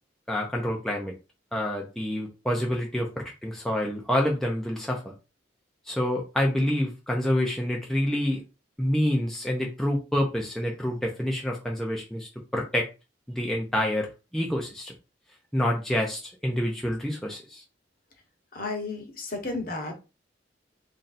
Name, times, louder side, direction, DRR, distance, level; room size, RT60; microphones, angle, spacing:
voice 1, 0.3-1.1 1.5-5.1 5.9-8.4 8.8-12.9 13.3-14.1 14.3-14.9 15.5-17.6, left 1 dB, ahead, 0.5 m, -27 dB
voice 2, 18.5-19.9, left 3 dB, 45° left, 1.0 m, -33 dB
3.1 x 2.6 x 4.1 m
head